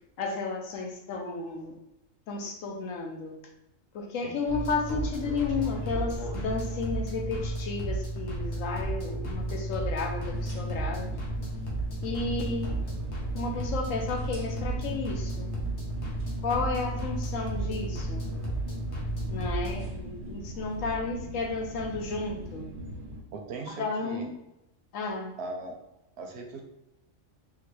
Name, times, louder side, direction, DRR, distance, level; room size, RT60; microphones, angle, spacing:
voice 1, 0.2-1.7 2.3-3.4 3.9-11.1 12.0-12.8 13.3-15.5 16.4-18.3 19.3-22.7 23.7-24.4 24.9-25.3, left 4 dB, 90° left, 2 dB, 1.0 m, -33 dB
sound 1, 4.5-19.9, right 1 dB, 65° left, 1.1 m, -33 dB
sound 2, 10.3-23.2, right 1 dB, 85° right, 1.1 m, -41 dB
voice 2, 23.3-24.3 25.4-25.8 26.2-26.6, right 3 dB, 65° right, 2 dB, 0.8 m, -39 dB
3.6 x 2.1 x 3.1 m, 0.89 s
omnidirectional pair, 1.3 m